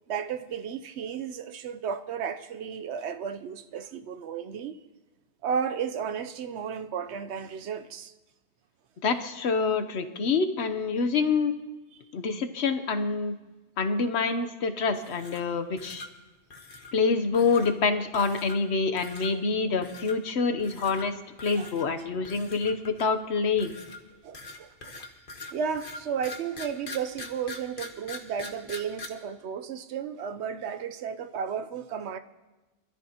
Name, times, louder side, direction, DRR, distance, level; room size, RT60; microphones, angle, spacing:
voice 1, 0.1-4.8 5.4-8.1 21.5-21.7 24.2-25.0 25.5-32.2, right 7 dB, 80° right, 1.0 m, -33 dB
voice 2, 9.0-11.5 12.1-13.4 13.8-16.1 16.9-23.8, left 4 dB, 75° left, 1.1 m, -26 dB
sound 1, 14.9-15.5 15.8-16.1 16.5-16.9 17.3-17.7 18.1-18.7 19.0-19.3 19.8-20.1 20.6-21.1 21.4-21.9 22.2-23.2 23.6-29.1, left 2 dB, 50° left, 1.4 m, -42 dB
24.5 x 13.5 x 2.9 m
omnidirectional pair, 1.1 m